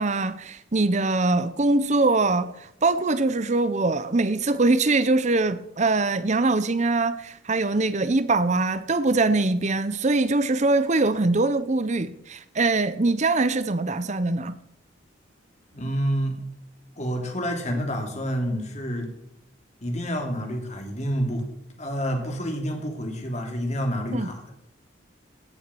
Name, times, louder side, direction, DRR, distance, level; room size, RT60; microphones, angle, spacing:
voice 1, 0.0-14.6 24.1-24.3, right 3 dB, 35° right, 0.7 m, -23 dB
voice 2, 15.7-16.4 17.0-19.1 19.8-21.4 21.8-24.5, equal, 35° left, 3.1 m, -28 dB
17.5 x 7.2 x 7.7 m
head